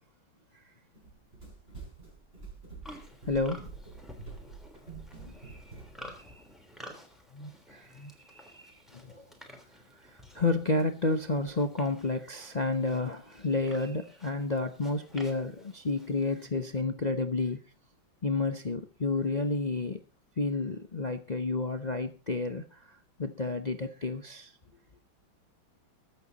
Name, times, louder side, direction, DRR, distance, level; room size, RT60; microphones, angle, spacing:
Run, 0.9-6.2, right 4 dB, 30° right, 8.0 m, -46 dB
Livestock farm animals working animals, 2.8-16.5, equal, ahead, 3.2 m, -52 dB
voice 1, 3.3-3.7 5.3-5.6 6.2-6.3 7.3-9.2 10.0-17.6 18.2-20.0 20.4-24.5, left 3 dB, 50° left, 8 dB, 0.5 m, -31 dB
22.0 x 8.1 x 4.0 m, 0.32 s
omnidirectional pair, 2.2 m